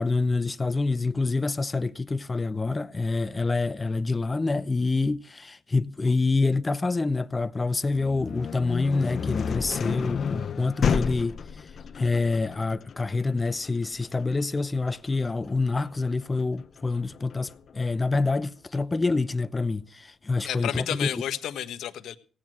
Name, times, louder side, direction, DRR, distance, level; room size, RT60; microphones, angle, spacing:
voice 1, 0.0-21.1, left 3 dB, 25° left, 0.8 m, -27 dB
sound 1, 7.9-17.7, left 6 dB, 50° left, 1.0 m, -31 dB
voice 2, 20.4-22.2, left 10 dB, 75° left, 1.3 m, -31 dB
17.5 x 9.2 x 6.3 m
cardioid pair, 90°, 0 cm